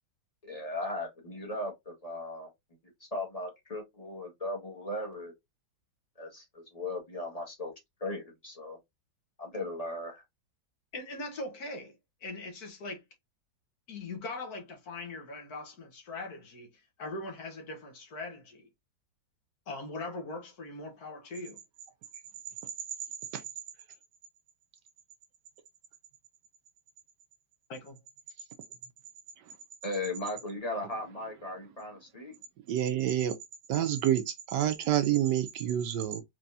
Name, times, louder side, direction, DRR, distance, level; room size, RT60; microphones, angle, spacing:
voice 1, 0.4-2.5 3.0-5.3 6.2-7.7 8.0-8.8 9.4-10.2 29.8-32.3, left 2 dB, 20° left, 1.5 m, -37 dB
voice 2, 10.9-11.9 12.2-13.0 13.9-18.7 19.7-21.6 27.7-28.0, left 2 dB, 60° left, 1.5 m, -41 dB
voice 3, 32.7-33.3 33.7-36.2, right 11 dB, 75° right, 1.2 m, -28 dB
4.6 x 3.3 x 2.6 m
omnidirectional pair, 2.0 m